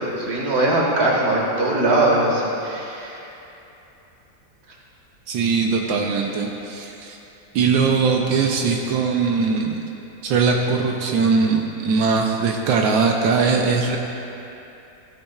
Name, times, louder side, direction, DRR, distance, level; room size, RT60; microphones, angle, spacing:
voice 1, 0.0-3.2, right 1 dB, 40° right, -3 dB, 1.7 m, -21 dB
voice 2, 5.3-7.2 7.5-9.8 10.2-14.0, right 5 dB, 85° right, 1 dB, 1.4 m, -20 dB
15.0 x 8.5 x 2.4 m, 2.9 s
omnidirectional pair, 2.0 m